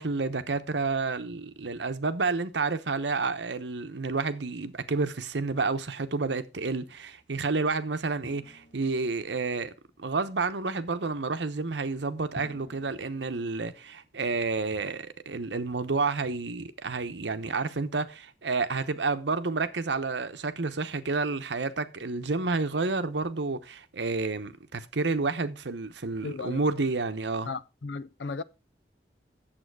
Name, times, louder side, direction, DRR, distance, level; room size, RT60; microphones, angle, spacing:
voice 1, 0.0-9.7 10.0-27.5, right 3 dB, 85° right, 0.9 m, -30 dB
Drum, 8.2-9.7 12.3-14.5, equal, 55° left, 2.2 m, -50 dB
voice 2, 26.2-26.6 27.5-28.4, left 4 dB, 85° left, 0.6 m, -35 dB
8.9 x 7.5 x 4.7 m
head